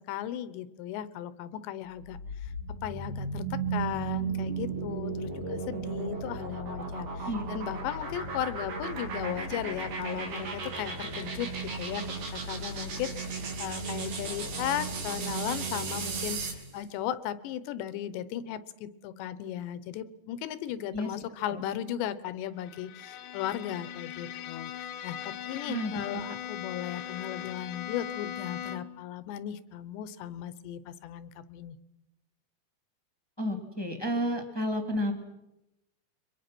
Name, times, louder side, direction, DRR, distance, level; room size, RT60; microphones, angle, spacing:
voice 1, 0.0-2.5 2.8-31.8, left 11 dB, 80° left, 14 dB, 3.2 m, -36 dB
sound 1, 1.9-16.7, right 4 dB, 65° right, 5.0 m, -35 dB
Bowed string instrument, 22.6-29.1, left 10 dB, 65° left, 2.2 m, -40 dB
voice 2, 25.7-26.0 33.4-35.1, equal, 10° left, 3 dB, 1.7 m, -31 dB
29.5 x 24.0 x 6.1 m, 0.93 s
omnidirectional pair, 5.0 m